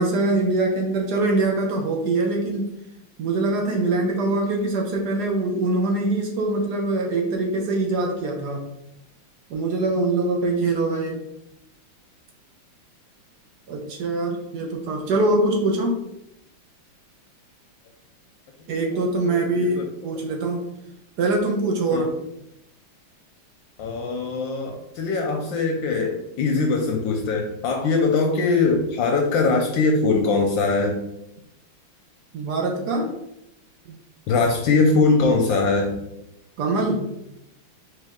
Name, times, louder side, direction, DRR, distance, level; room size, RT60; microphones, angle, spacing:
voice 1, 0.0-2.7 3.2-8.6 9.5-11.2 13.7-16.0 18.7-20.6 21.2-22.2 32.3-33.1 36.6-37.1, right 2 dB, 65° right, 1 dB, 1.1 m, -23 dB
voice 2, 19.3-19.8 21.9-22.1 23.8-31.0 34.3-36.0, left 3 dB, 75° left, 2 dB, 1.2 m, -21 dB
4.4 x 3.3 x 3.6 m, 0.83 s
omnidirectional pair, 2.3 m